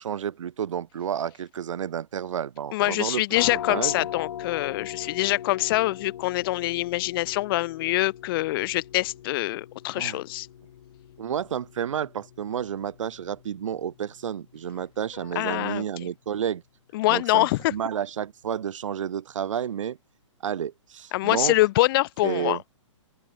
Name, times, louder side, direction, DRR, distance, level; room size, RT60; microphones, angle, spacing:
voice 1, 0.0-3.2 3.5-4.0 10.0-10.2 11.2-16.6 17.1-20.0 20.4-21.5 22.2-22.6, right 9 dB, 75° right, 1.0 m, -31 dB
voice 2, 2.7-10.5 15.4-16.1 16.9-17.7 21.1-22.6, left 18 dB, 45° left, 1.9 m, -25 dB
sound 1, 3.3-14.8, left 10 dB, 65° left, 1.9 m, -40 dB
open air
hypercardioid pair, 135°, 16 cm